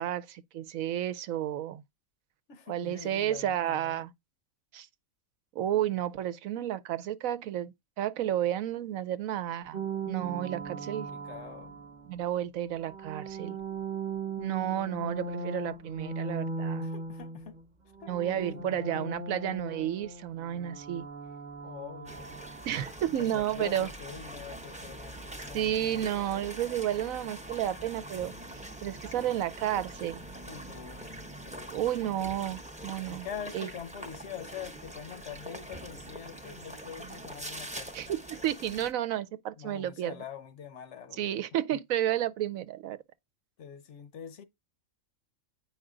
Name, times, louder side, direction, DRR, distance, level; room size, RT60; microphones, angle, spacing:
voice 1, 0.0-1.8 2.7-4.1 4.7-4.9 5.5-11.1 12.1-13.6 14.4-16.9 18.1-21.1 22.6-23.9 25.5-30.2 31.7-33.3 33.5-33.7 37.9-40.1 41.2-43.0, right 11 dB, 85° right, 1.1 m, -32 dB
voice 2, 2.5-4.1 10.9-11.8 16.8-17.6 18.0-19.2 21.6-22.4 23.1-26.1 30.4-31.1 31.4-32.2 32.8-38.1 39.6-41.4 41.7-41.8 43.6-44.4, left 8 dB, 65° left, 1.0 m, -45 dB
sound 1, 9.7-12.2 12.8-17.7 17.9-22.9, right 3 dB, 40° right, 1.0 m, -38 dB
sound 2, 22.0-38.9, right 1 dB, 5° right, 0.6 m, -44 dB
8.8 x 5.0 x 3.8 m
omnidirectional pair, 1.4 m